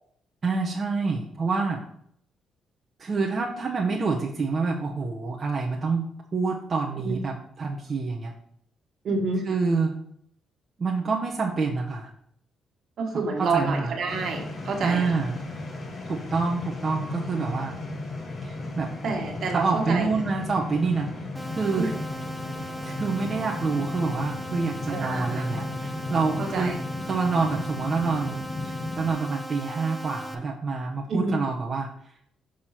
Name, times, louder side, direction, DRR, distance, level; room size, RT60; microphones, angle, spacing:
voice 1, 0.4-1.8 3.0-6.0 6.3-8.3 9.5-9.9 10.8-12.1 13.4-13.9 14.8-15.3 16.1-17.8 18.4-18.9 19.5-21.1 21.6-21.9 22.8-26.7 27.1-31.9, right 4 dB, 35° right, -2 dB, 1.0 m, -27 dB
voice 2, 9.0-9.4 13.0-15.2 19.0-20.1 21.8-21.9 24.9-25.5 26.4-26.8 31.1-31.4, right 3 dB, 65° right, 1 dB, 1.8 m, -28 dB
sound 1, 14.1-29.1, left 2 dB, 45° left, 1.3 m, -35 dB
sound 2, 21.3-30.3, right 1 dB, 5° right, 1.1 m, -38 dB
6.4 x 3.7 x 5.8 m, 0.66 s
cardioid pair, 90°, 0 cm